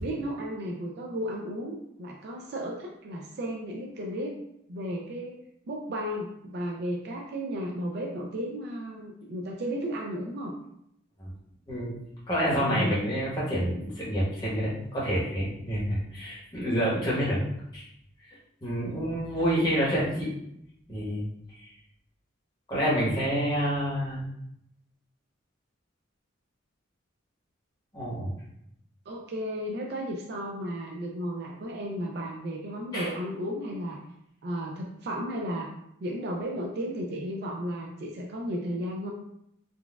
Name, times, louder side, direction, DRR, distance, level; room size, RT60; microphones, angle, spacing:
voice 1, 0.0-4.3 4.7-5.4 5.7-10.5 12.6-13.1 18.8-18.9 29.1-34.0 34.4-35.7 36.0-39.1, equal, 55° right, 0 dB, 0.4 m, -34 dB
voice 2, 12.3-17.4 17.7-17.9 18.3-20.4 20.9-21.7 22.7-24.3 27.9-28.3 32.9-33.1, equal, 20° left, -7 dB, 1.0 m, -28 dB
3.9 x 2.2 x 2.3 m, 0.76 s
head